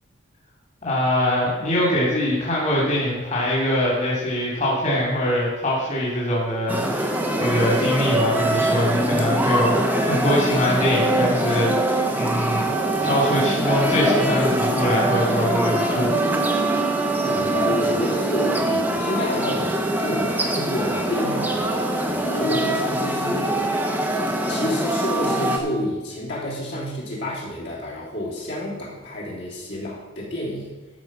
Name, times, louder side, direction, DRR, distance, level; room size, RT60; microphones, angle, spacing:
voice 1, 0.8-12.7 13.0-16.2, equal, 35° left, -5 dB, 2.7 m, -23 dB
sound 1, 6.7-25.6, right 1 dB, 10° right, 0.9 m, -23 dB
voice 2, 17.2-24.0 24.5-30.7, left 1 dB, 55° left, -5 dB, 3.2 m, -29 dB
12.5 x 5.3 x 6.0 m, 1.3 s
head